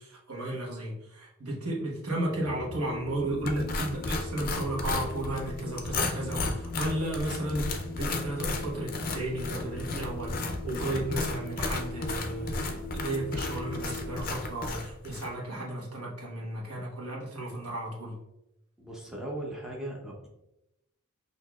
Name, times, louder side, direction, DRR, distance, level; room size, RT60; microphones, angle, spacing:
voice 1, 0.0-18.2, right 1 dB, 80° right, -3 dB, 1.2 m, -34 dB
sound 1, 2.3-14.2, left 2 dB, 35° right, 0.8 m, -41 dB
sound 2, 3.4-15.3, left 3 dB, 40° left, 0.5 m, -34 dB
voice 2, 18.8-20.3, right 1 dB, ahead, -3 dB, 0.6 m, -38 dB
5.9 x 2.8 x 2.3 m, 0.89 s
head